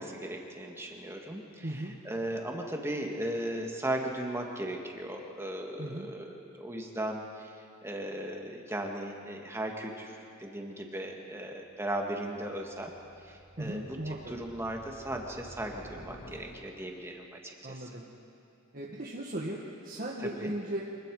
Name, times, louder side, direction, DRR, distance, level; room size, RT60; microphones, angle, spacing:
voice 1, 0.0-12.9 13.2-17.9 20.2-20.5, right 1 dB, 15° right, 1 dB, 2.0 m, -37 dB
voice 2, 1.6-1.9 5.8-6.1 13.6-14.3 17.6-18.1 18.7-20.8, right 1 dB, 45° right, -4 dB, 1.8 m, -37 dB
sound 1, 11.7-16.9, equal, 90° left, 6.5 m, -52 dB
25.5 x 20.5 x 5.0 m, 2.6 s
head